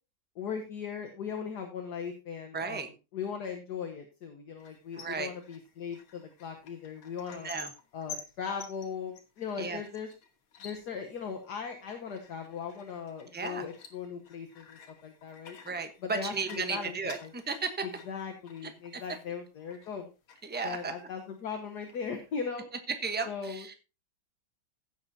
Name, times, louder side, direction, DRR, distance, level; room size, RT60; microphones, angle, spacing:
voice 1, 0.4-2.8 3.1-7.5 7.9-10.1 10.6-15.6 16.0-16.9 17.2-17.3 18.1-20.1 20.6-22.7 23.3-23.7, left 6 dB, 60° left, 4 dB, 1.6 m, -38 dB
voice 2, 2.5-2.9 5.0-5.3 7.3-7.7 9.6-9.8 13.3-13.7 15.6-17.7 18.6-19.0 20.4-20.9 23.0-23.7, right 5 dB, 10° right, 7 dB, 0.5 m, -35 dB
sound 1, 4.6-20.0 20.3-21.5 21.8-22.4, left 6 dB, 90° left, 2.2 m, -51 dB
16.0 x 7.6 x 2.7 m, 0.29 s
omnidirectional pair, 2.2 m